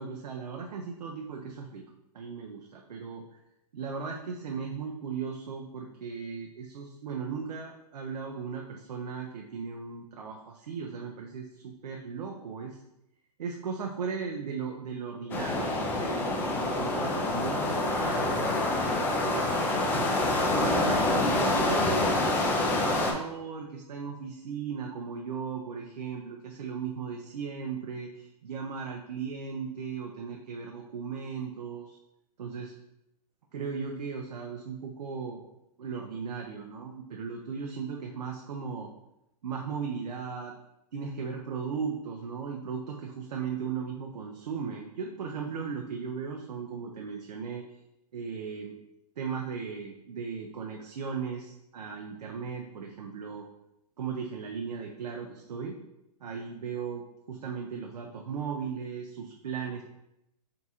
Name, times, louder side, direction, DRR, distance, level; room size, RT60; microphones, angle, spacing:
voice 1, 0.0-1.8 2.1-3.3 3.7-12.8 13.4-20.1 20.5-22.2 22.6-32.0 32.4-32.7 33.5-35.4 35.8-38.9 39.4-40.5 40.9-47.6 48.1-48.7 49.2-53.5 54.0-55.8 56.2-59.8, right 6 dB, 85° right, 1 dB, 0.6 m, -37 dB
sound 1, 15.3-23.1, left 2 dB, 10° left, 0.3 m, -27 dB
3.8 x 2.3 x 4.2 m, 0.86 s
hypercardioid pair, 145°, 20 cm